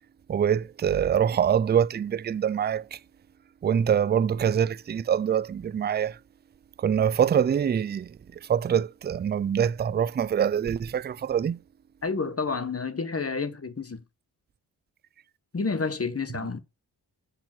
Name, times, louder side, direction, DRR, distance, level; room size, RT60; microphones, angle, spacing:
voice 1, 0.3-2.8 3.6-6.2 6.8-8.1 8.5-11.6, right 8 dB, 25° right, 0.3 m, -24 dB
voice 2, 12.0-14.0 15.5-16.6, left 4 dB, 35° left, 1.1 m, -29 dB
6.7 x 5.7 x 5.9 m
cardioid pair, 40°, 43 cm